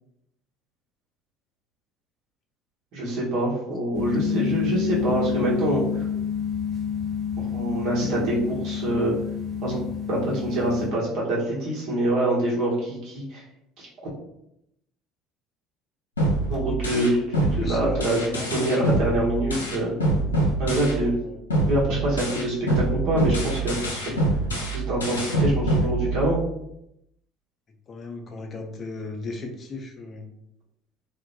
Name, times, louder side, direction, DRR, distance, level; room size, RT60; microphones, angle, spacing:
voice 1, 2.9-6.1 7.4-9.1 9.6-9.8 10.1-13.4 13.8-13.9 16.5-17.1 17.6-18.2 18.5-19.9 20.6-21.1 21.7-24.1 24.7-26.4, right 1 dB, 60° right, -6 dB, 1.1 m, -25 dB
sound 1, 3.9-10.9, left 7 dB, 20° right, 1.1 m, -28 dB
sound 2, 16.2-21.2 21.5-26.5, right 2 dB, 90° left, 0.5 m, -25 dB
voice 2, 16.7-17.1 17.5-19.1 21.1-21.4 27.9-30.3, left 3 dB, 40° left, 3 dB, 0.5 m, -34 dB
2.2 x 2.1 x 2.7 m, 0.79 s
hypercardioid pair, 65°, 0 cm